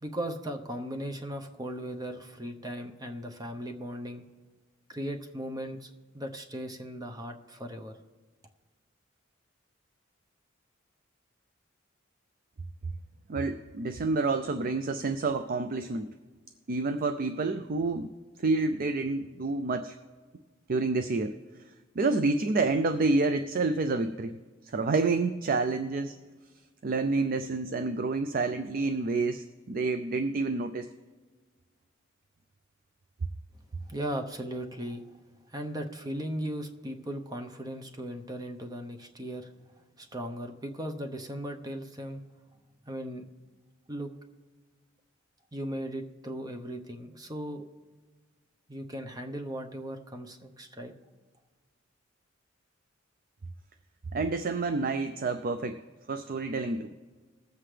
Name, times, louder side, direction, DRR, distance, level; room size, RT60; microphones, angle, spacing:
voice 1, 0.0-4.2 4.9-8.0 33.8-35.1 35.5-39.5 40.0-42.2 42.9-43.2 43.9-44.1 45.5-47.7 48.7-50.9, equal, 20° right, 5 dB, 0.8 m, -37 dB
voice 2, 13.3-16.1 16.7-18.1 18.4-20.0 20.7-21.3 22.0-24.4 24.7-26.2 26.8-30.9 54.1-55.8 56.1-56.9, right 3 dB, 45° right, 9 dB, 0.4 m, -28 dB
20.0 x 7.6 x 3.3 m, 1.4 s
head